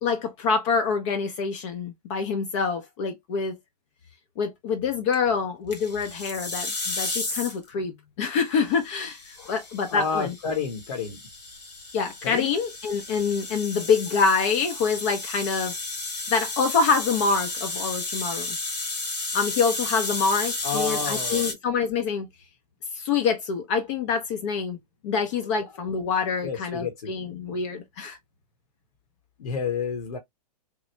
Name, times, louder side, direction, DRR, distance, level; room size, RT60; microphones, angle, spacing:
voice 1, 0.0-3.6 4.4-10.3 11.9-15.7 16.3-18.6 19.3-22.3 22.9-24.8 25.0-28.2, left 5 dB, 45° left, 0.7 m, -26 dB
sound 1, 5.7-7.7 8.7-21.5, left 2 dB, 90° left, 1.3 m, -33 dB
voice 2, 9.9-11.2 12.2-12.5 20.6-21.5 26.4-27.1 29.4-30.2, left 5 dB, 65° left, 1.1 m, -30 dB
3.2 x 2.2 x 3.1 m
hypercardioid pair, 115°, 21 cm